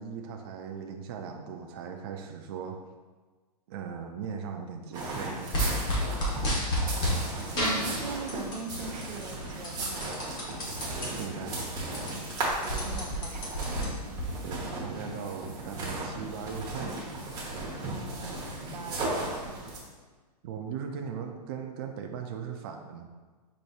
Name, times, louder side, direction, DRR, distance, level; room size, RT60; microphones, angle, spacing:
voice 1, 0.0-2.8 3.7-5.7 11.1-11.9 14.4-17.0 20.4-23.1, right 6 dB, 35° right, 4 dB, 0.4 m, -39 dB
sound 1, 4.9-19.8, right 2 dB, 20° right, 0.9 m, -36 dB
sound 2, 5.5-7.2 7.6-8.7 9.0-11.1 11.5-11.6 11.8-14.2, equal, 20° left, 0.9 m, -30 dB
voice 2, 7.5-10.6 12.6-13.6 17.9-19.6, right 4 dB, 90° right, 4 dB, 0.6 m, -40 dB
5.0 x 4.0 x 2.3 m, 1.4 s
hypercardioid pair, 145°, 21 cm